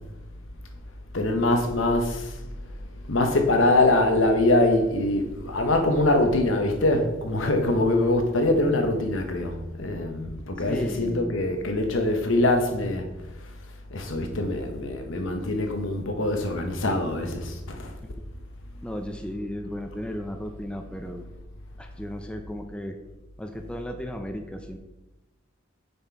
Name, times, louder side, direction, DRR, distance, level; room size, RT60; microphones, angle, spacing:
voice 1, 1.1-2.4 3.1-13.0 13.9-17.9, left 2 dB, 75° left, 1.0 m, -23 dB
voice 2, 10.6-11.5 18.8-21.2 21.8-23.0 23.4-24.8, equal, 5° left, 0.5 m, -35 dB
6.8 x 4.4 x 4.6 m
head